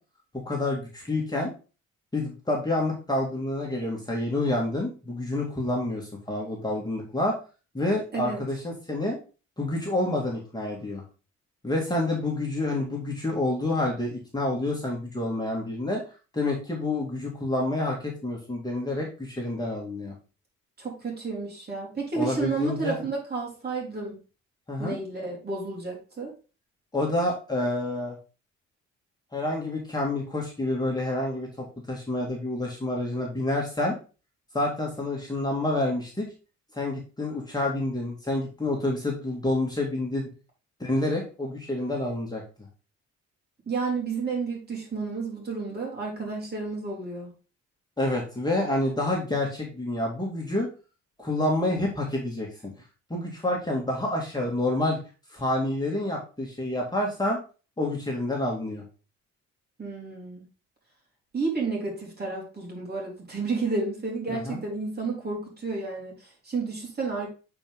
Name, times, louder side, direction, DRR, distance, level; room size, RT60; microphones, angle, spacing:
voice 1, 0.4-1.5 2.1-7.4 7.7-9.2 9.6-11.0 11.6-16.0 16.3-20.1 22.1-23.0 24.7-25.0 26.9-28.2 29.3-33.9 34.5-36.3 36.7-40.3 40.8-42.7 48.0-50.7 51.2-52.5 53.1-55.0 55.3-57.4 57.8-58.8 64.3-64.6, left 1 dB, 15° left, -2 dB, 2.2 m, -28 dB
voice 2, 20.8-24.2 24.8-26.3 43.7-47.3 59.8-60.4 61.3-67.3, right 4 dB, 30° right, -1 dB, 3.9 m, -31 dB
8.4 x 4.7 x 3.6 m, 0.34 s
cardioid pair, 90°, 30 cm